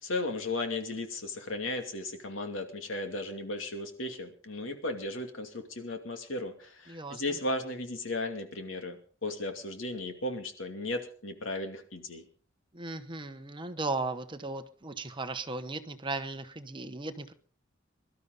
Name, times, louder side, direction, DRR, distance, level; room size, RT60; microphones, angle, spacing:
voice 1, 0.0-12.2, left 2 dB, 75° left, 5 dB, 2.5 m, -35 dB
voice 2, 6.9-7.2 12.7-17.3, right 3 dB, 25° right, 10 dB, 1.0 m, -36 dB
22.5 x 12.5 x 4.0 m, 0.43 s
head